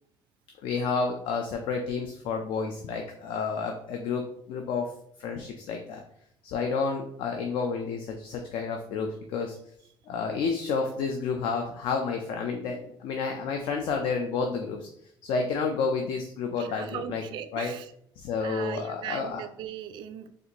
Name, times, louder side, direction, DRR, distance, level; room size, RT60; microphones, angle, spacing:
voice 1, 0.6-4.9 5.2-6.0 6.4-9.6 10.1-14.9 15.2-17.2 17.5-17.7 18.2-19.4, left 5 dB, 75° left, 3 dB, 0.5 m, -30 dB
voice 2, 16.6-17.9 18.4-20.3, right 10 dB, 65° right, 10 dB, 0.4 m, -39 dB
4.2 x 2.5 x 2.9 m, 0.68 s
cardioid pair, 150°, 9 cm